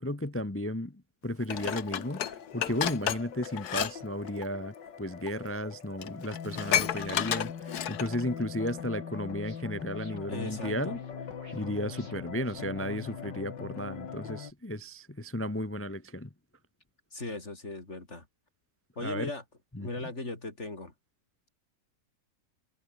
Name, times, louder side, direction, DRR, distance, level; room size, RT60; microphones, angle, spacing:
voice 1, 0.0-11.0 11.5-16.3 19.0-19.3 19.7-19.9, equal, 15° left, 0.5 m, -34 dB
sound 1, 1.5-14.5, left 7 dB, 90° left, 2.4 m, -42 dB
Dishes pots and pans, 1.5-3.9 4.2-4.5 5.3-5.4 5.7-5.8 6.0-8.2 8.7-8.8, left 10 dB, 65° left, 1.5 m, -31 dB
sound 2, 8.3-13.3, right 2 dB, 60° right, 7.1 m, -57 dB
voice 2, 10.3-11.0 17.1-18.3 19.0-19.4 19.8-20.9, left 2 dB, 40° left, 5.0 m, -38 dB
omnidirectional pair, 1.9 m